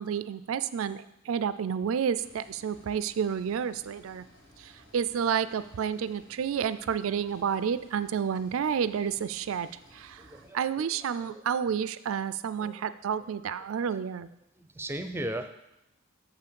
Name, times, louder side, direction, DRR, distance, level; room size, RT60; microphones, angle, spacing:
voice 1, 0.0-4.2 4.6-9.7 9.9-10.3 10.5-14.3, right 7 dB, 80° right, 14 dB, 0.4 m, -30 dB
sound 1, 2.2-10.5, left 1 dB, 85° left, 3.2 m, -57 dB
voice 2, 10.2-10.6 12.6-12.8 14.6-15.5, right 1 dB, 10° right, 8 dB, 0.5 m, -36 dB
6.9 x 5.7 x 6.9 m, 0.88 s
head